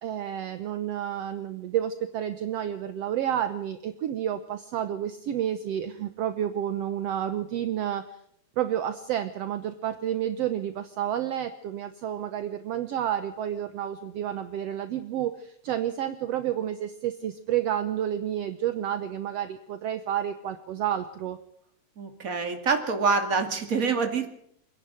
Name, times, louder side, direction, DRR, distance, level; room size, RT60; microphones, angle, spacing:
voice 1, 0.0-8.0 8.6-21.4, right 10 dB, 65° right, 10 dB, 1.9 m, -30 dB
voice 2, 22.0-24.3, right 4 dB, 30° right, 6 dB, 2.6 m, -26 dB
28.0 x 10.5 x 9.1 m, 0.70 s
omnidirectional pair, 3.4 m